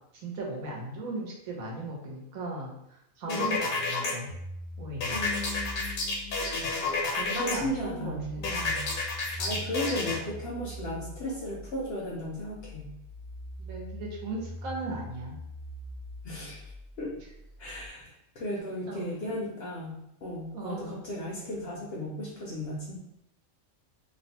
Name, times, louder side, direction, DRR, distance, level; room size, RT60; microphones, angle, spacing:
voice 1, 0.1-2.7 3.2-4.3 4.8-5.2 7.2-8.5 13.6-15.4 18.9-19.4 20.5-20.9, right 2 dB, 85° right, -3 dB, 1.2 m, -37 dB
sound 1, 3.3-4.1 5.0-7.5 8.4-10.2, left 3 dB, 80° left, 1.1 m, -30 dB
voice 2, 3.3-3.7 5.1-6.7 7.4-8.9 9.4-12.9 16.2-16.6 17.0-17.1 17.6-23.0, left 1 dB, 65° left, -3 dB, 0.6 m, -36 dB
sound 2, 4.3-17.9, left 1 dB, 65° right, 0.4 m, -43 dB
2.8 x 2.1 x 2.8 m, 0.81 s
omnidirectional pair, 1.4 m